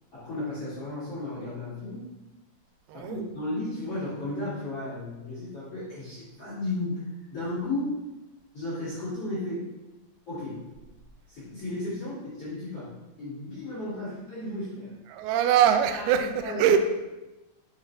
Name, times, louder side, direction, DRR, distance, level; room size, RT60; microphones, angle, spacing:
voice 1, 0.1-2.0 2.9-7.0 7.3-8.0 8.5-9.7 10.3-10.7 11.3-14.9 15.9-16.7, left 2 dB, 40° left, -11 dB, 2.5 m, -34 dB
voice 2, 15.1-16.8, right 9 dB, 90° right, 7 dB, 2.2 m, -23 dB
9.1 x 5.0 x 3.1 m, 1.1 s
omnidirectional pair, 5.1 m